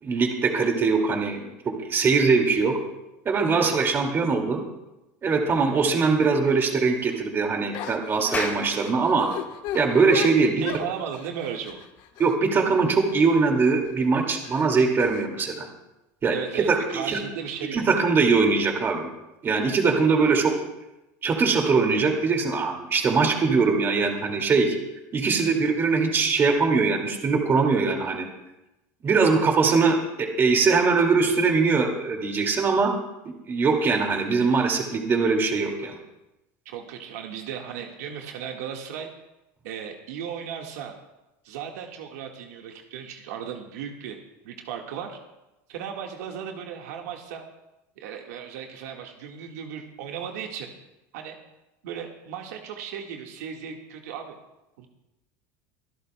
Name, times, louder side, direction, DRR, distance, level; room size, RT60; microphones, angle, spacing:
voice 1, 0.0-2.8 3.3-4.6 5.2-9.3 9.7-10.6 12.2-15.7 16.2-17.2 17.7-19.1 19.4-20.5 21.2-24.8 25.1-28.3 29.0-32.9 33.3-36.0, right 4 dB, 25° right, 2 dB, 2.2 m, -22 dB
sound 1, 6.9-7.2 7.7-13.4 13.9-14.0 14.4-15.3, left 11 dB, 60° left, 1.1 m, -37 dB
Clapping, 8.3-13.0, left 4 dB, 20° left, 1.9 m, -37 dB
voice 2, 10.6-11.9 16.3-17.8 20.2-20.3 29.1-29.5 36.6-39.1 39.6-40.9 41.4-44.2 44.4-45.2 45.7-47.4 48.0-50.7 51.1-51.4 51.8-54.4 54.8-54.9, right 8 dB, 90° right, 2 dB, 1.6 m, -36 dB
24.5 x 11.5 x 2.2 m, 0.96 s
supercardioid pair, 135°, 8 cm